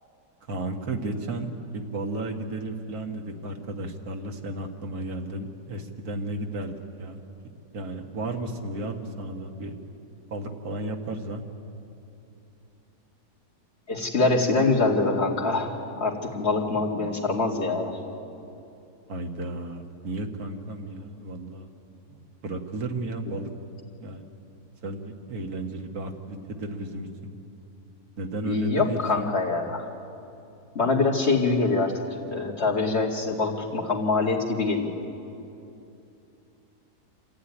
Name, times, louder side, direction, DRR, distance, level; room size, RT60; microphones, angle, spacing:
voice 1, 0.5-1.5 1.7-7.2 7.7-9.7 10.3-11.4 19.1-21.7 22.1-23.5 24.0-24.3 24.8-27.1 28.2-29.3, right 2 dB, 65° right, 3 dB, 2.0 m, -33 dB
voice 2, 13.9-15.7 16.0-18.0 28.4-29.9 30.7-35.0, left 3 dB, 40° left, -2 dB, 2.7 m, -24 dB
26.0 x 15.5 x 9.9 m, 2.8 s
omnidirectional pair, 1.7 m